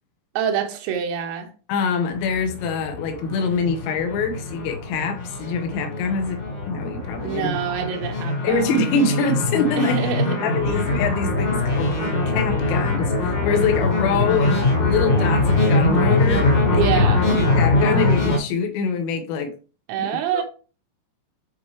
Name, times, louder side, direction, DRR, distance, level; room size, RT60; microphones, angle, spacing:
voice 1, 0.4-1.5 7.2-8.7 9.8-10.4 10.7-10.8 16.7-17.3 19.9-20.4, right 8 dB, 85° right, 3.5 m, -26 dB
voice 2, 1.7-6.4 6.7-7.5 8.4-10.0 10.4-19.5 20.0-20.4, left 4 dB, 80° left, 3.8 m, -25 dB
sound 1, 2.1-18.4, left 2 dB, 55° left, 1.8 m, -22 dB
9.7 x 4.3 x 3.1 m
omnidirectional pair, 5.9 m